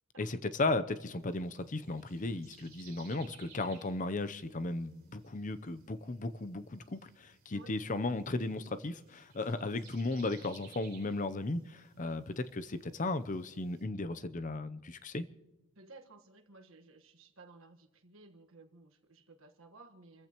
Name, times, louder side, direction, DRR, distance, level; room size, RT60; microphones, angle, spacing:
voice 1, 0.2-15.3, left 2 dB, 35° left, 0.7 m, -35 dB
sound 1, 1.2-13.8, right 7 dB, 45° right, 3.9 m, -61 dB
voice 2, 15.7-20.3, right 3 dB, 70° right, 1.5 m, -56 dB
28.0 x 15.0 x 3.0 m
head